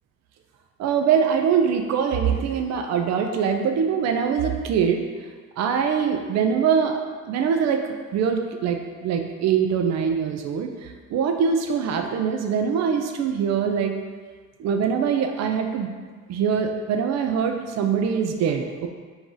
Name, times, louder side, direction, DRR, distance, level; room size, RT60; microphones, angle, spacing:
voice 1, 0.8-5.0 5.6-7.0 7.2-7.8 8.1-13.9 14.6-15.9 16.3-18.9, right 7 dB, 60° right, 5 dB, 0.4 m, -23 dB
4.5 x 2.7 x 3.7 m, 1.5 s
cardioid pair, 90°, 30 cm